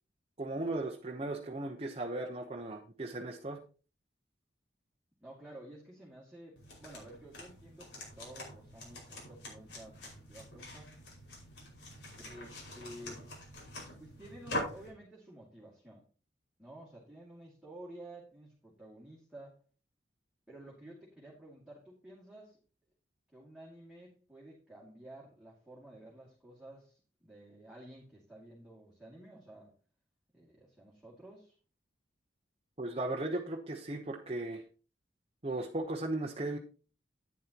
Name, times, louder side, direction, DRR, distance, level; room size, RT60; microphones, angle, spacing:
voice 1, 0.4-3.6 32.8-34.6 35.4-36.6, right 2 dB, 35° right, 1 dB, 1.0 m, -36 dB
voice 2, 5.2-10.0 10.3-10.9 12.2-13.3 14.0-16.0 16.6-19.6 20.5-22.6 23.3-29.7 30.3-31.5, right 1 dB, 5° right, -5 dB, 2.4 m, -52 dB
sound 1, 6.6-14.9, left 1 dB, 75° left, 5.4 m, -44 dB
11.5 x 9.7 x 3.0 m, 0.37 s
head